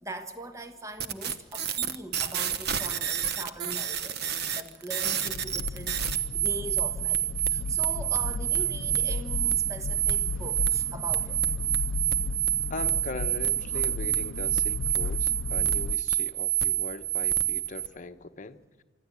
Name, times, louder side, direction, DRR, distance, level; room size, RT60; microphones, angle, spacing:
voice 1, 0.0-11.4 13.7-13.8, right 1 dB, 15° right, 7 dB, 1.2 m, -41 dB
sound 1, 1.0-17.9, right 11 dB, 55° right, 1.0 m, -28 dB
sound 2, 5.2-16.0, left 3 dB, 85° left, 0.5 m, -35 dB
voice 2, 12.7-18.6, left 3 dB, 40° left, 8 dB, 1.0 m, -40 dB
25.0 x 13.5 x 8.5 m, 1.4 s
head